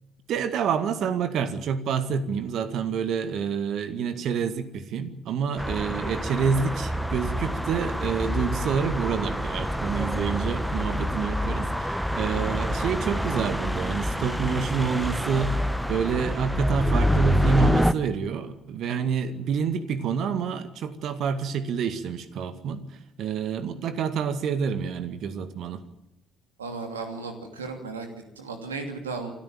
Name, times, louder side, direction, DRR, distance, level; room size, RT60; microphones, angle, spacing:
voice 1, 0.3-22.8 23.2-25.8, right 6 dB, 60° right, 12 dB, 1.9 m, -28 dB
sound 1, 5.5-8.4 8.6-11.3 12.1-13.7 14.2-16.7, right 1 dB, 20° right, 6.2 m, -45 dB
sound 2, 5.6-17.9, equal, ahead, 1.4 m, -27 dB
voice 2, 12.3-12.7 26.6-28.1 28.4-29.3, right 4 dB, 85° right, 6 dB, 2.7 m, -35 dB
27.5 x 13.5 x 8.8 m, 0.90 s
figure-of-eight pair, 50°, 0 cm